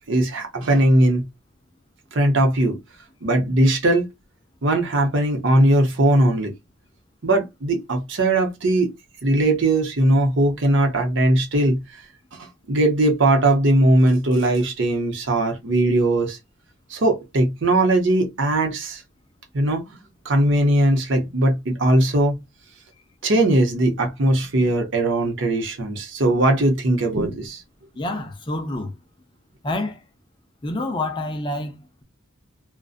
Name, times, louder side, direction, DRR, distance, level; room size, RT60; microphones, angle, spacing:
voice 1, 0.1-1.2 2.1-2.8 3.2-4.1 4.6-6.5 7.2-8.9 9.2-11.8 12.3-16.4 16.9-19.0 19.5-19.8 20.2-22.4 23.2-27.6, right 1 dB, 55° right, 0.7 m, -19 dB
voice 2, 28.0-29.0 29.6-30.0 30.6-32.0, left 2 dB, 20° left, 0.4 m, -28 dB
2.5 x 2.1 x 2.4 m
head